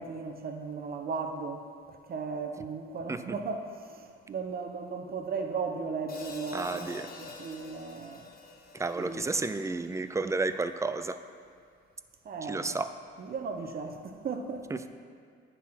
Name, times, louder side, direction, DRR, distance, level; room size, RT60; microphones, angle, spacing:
voice 1, 0.0-1.6 2.1-8.3 8.9-9.3 12.2-12.8 13.2-14.9, right 4 dB, 50° right, 0.9 m, -36 dB
Hi-hat, 6.1-10.4, left 3 dB, 50° left, 1.2 m, -47 dB
voice 2, 6.5-7.1 8.7-11.2 12.5-12.9, right 3 dB, 15° right, 0.4 m, -31 dB
9.5 x 4.1 x 5.8 m
cardioid pair, 90°, 20 cm